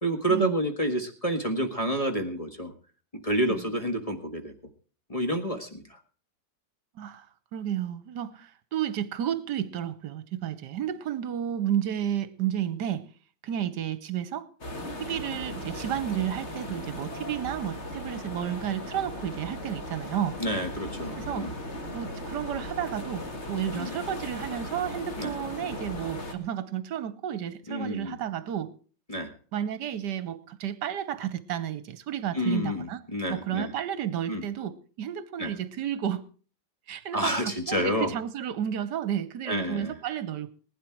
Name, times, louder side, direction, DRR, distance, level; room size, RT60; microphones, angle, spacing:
voice 1, 0.0-2.7 3.2-4.5 5.1-6.0 20.4-21.5 23.7-23.9 25.2-25.3 27.7-28.2 29.1-29.3 32.3-33.7 34.3-34.4 35.4-35.5 37.1-38.1 39.5-40.0, equal, 20° left, 5 dB, 1.5 m, -29 dB
voice 2, 6.9-7.3 7.5-13.1 13.4-14.5 15.0-20.4 21.2-21.5 21.9-28.7 29.5-33.0 33.3-36.3 36.9-40.5, right 10 dB, 65° right, 15 dB, 1.5 m, -32 dB
sound 1, 14.6-26.3, left 1 dB, 35° left, 2.1 m, -37 dB
19.5 x 10.0 x 4.6 m, 0.40 s
omnidirectional pair, 2.0 m